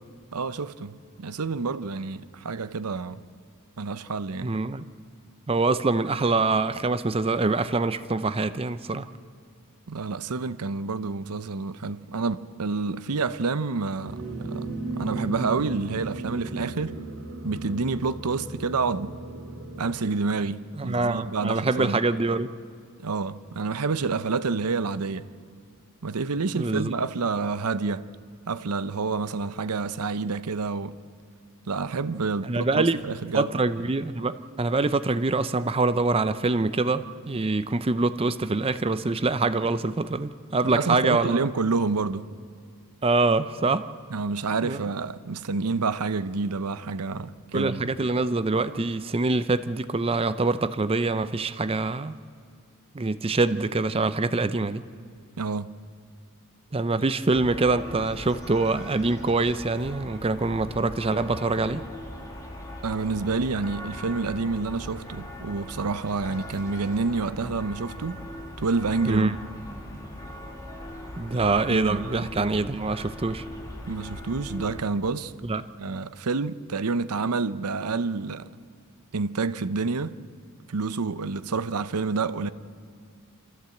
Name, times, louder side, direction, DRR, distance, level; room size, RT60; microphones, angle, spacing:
voice 1, 0.3-3.2 3.8-4.5 9.9-17.0 17.4-19.1 19.8-22.0 23.0-25.3 26.0-28.1 28.5-31.0 31.7-33.5 40.7-42.3 44.1-47.9 55.4-55.7 62.8-68.2 68.6-69.4 71.7-72.3 73.8-75.3 75.8-78.5 79.1-80.2 80.7-82.5, right 4 dB, 85° right, 0.7 m, -28 dB
voice 2, 4.4-4.8 5.5-9.1 20.8-22.5 26.5-26.9 32.4-33.0 33.3-41.4 43.0-43.9 44.6-44.8 47.5-52.2 52.9-54.8 56.7-61.8 69.1-69.3 71.2-73.4 75.5-75.6, right 3 dB, 25° right, 0.5 m, -25 dB
sound 1, 14.0-20.0, right 2 dB, 50° right, 3.9 m, -35 dB
sound 2, 57.3-74.8, left 1 dB, 15° left, 2.5 m, -40 dB
26.0 x 14.5 x 7.8 m
head